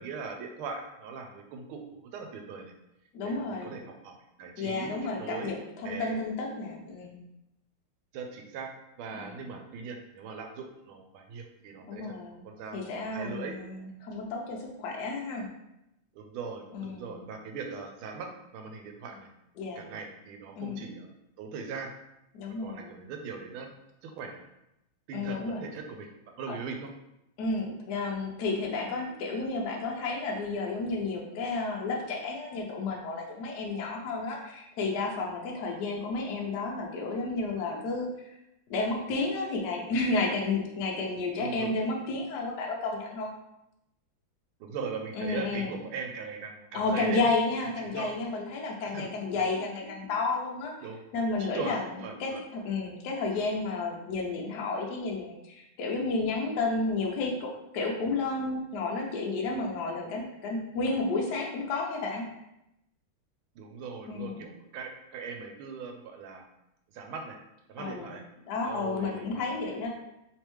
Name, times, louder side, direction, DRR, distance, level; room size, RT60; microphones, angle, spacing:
voice 1, 0.0-2.7 3.2-6.2 8.1-8.7 9.0-13.6 16.1-19.3 19.8-21.9 22.6-23.7 24.0-24.5 25.1-26.1 26.4-26.9 41.4-41.7 44.6-47.3 47.6-48.1 48.8-49.5 50.8-51.0 51.5-52.4 63.5-66.4 66.9-67.4 67.7-68.2 68.6-69.4, right 5 dB, 85° right, 3 dB, 1.5 m, -40 dB
voice 2, 3.1-3.7 4.6-5.6 5.8-7.2 9.1-9.5 11.9-12.4 12.7-15.5 16.7-17.2 19.6-19.8 20.6-20.8 22.3-23.0 25.1-25.6 27.4-38.1 38.7-43.3 45.2-45.8 46.7-50.7 51.1-51.8 52.2-62.2 64.1-64.4 67.8-68.1 68.5-69.9, left 3 dB, 65° left, -1 dB, 1.1 m, -31 dB
3.5 x 3.2 x 3.0 m, 0.86 s
omnidirectional pair, 2.3 m